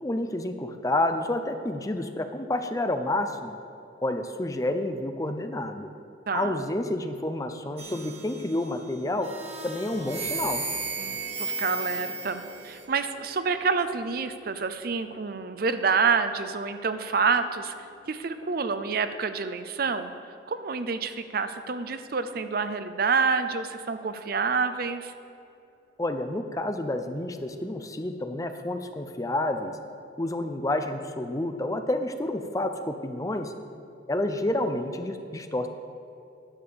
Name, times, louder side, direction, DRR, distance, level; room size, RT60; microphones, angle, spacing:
voice 1, 0.0-3.5 4.0-5.9 6.3-9.3 9.6-10.6 26.0-29.8 30.2-33.5 34.1-35.7, left 1 dB, 20° left, 7 dB, 0.5 m, -29 dB
voice 2, 6.3-6.6 11.0-17.7 18.1-20.1 20.5-25.1, right 5 dB, 50° right, 10 dB, 0.5 m, -28 dB
sound 1, 7.8-8.7 9.2-12.8, right 4 dB, 35° right, 1.4 m, -34 dB
sound 2, 9.9-24.4 24.9-25.3, equal, 45° left, 1.6 m, -53 dB
10.5 x 7.1 x 6.9 m, 2.6 s
head